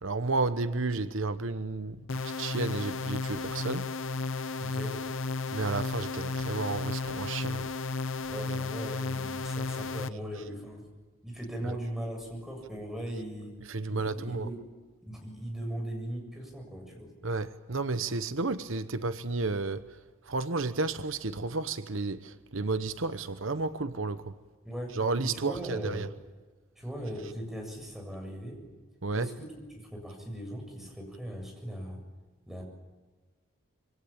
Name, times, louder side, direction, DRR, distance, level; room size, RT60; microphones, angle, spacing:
voice 1, 0.0-3.9 5.5-7.6 11.6-11.8 13.7-14.5 17.2-20.0 20.3-24.3 24.9-26.1 29.0-29.3, right 3 dB, 70° right, 1.0 m, -32 dB
sound 1, 2.1-10.1, left 3 dB, 70° left, 1.0 m, -33 dB
voice 2, 4.6-5.0 8.3-10.8 11.2-13.5 13.9-14.6 15.1-17.1 18.3-18.4 24.6-24.9 25.2-26.0 26.8-28.6 29.1-32.0 32.5-32.6, equal, ahead, 7.5 m, -39 dB
27.0 x 25.0 x 8.8 m
head